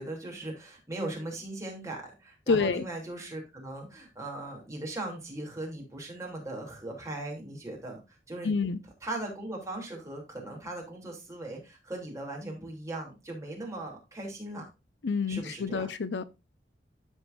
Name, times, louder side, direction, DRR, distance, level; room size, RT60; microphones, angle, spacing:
voice 1, 0.0-8.0 8.3-8.6 9.0-14.6 15.3-15.9, right 2 dB, 20° right, 3.1 m, -39 dB
voice 2, 2.5-2.9 8.4-8.8 15.0-16.2, left 4 dB, 75° left, 0.6 m, -28 dB
13.0 x 4.7 x 2.6 m
head